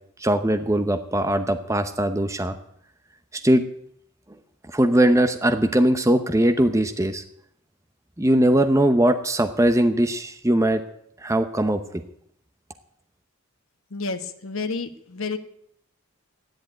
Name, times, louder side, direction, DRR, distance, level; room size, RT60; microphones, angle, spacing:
voice 1, 0.2-2.6 3.3-3.6 4.7-7.2 8.2-10.8 11.2-12.0, right 1 dB, 15° right, 8 dB, 0.7 m, -20 dB
voice 2, 13.9-15.4, left 4 dB, 65° left, 8 dB, 1.3 m, -30 dB
13.5 x 10.5 x 8.8 m, 0.72 s
head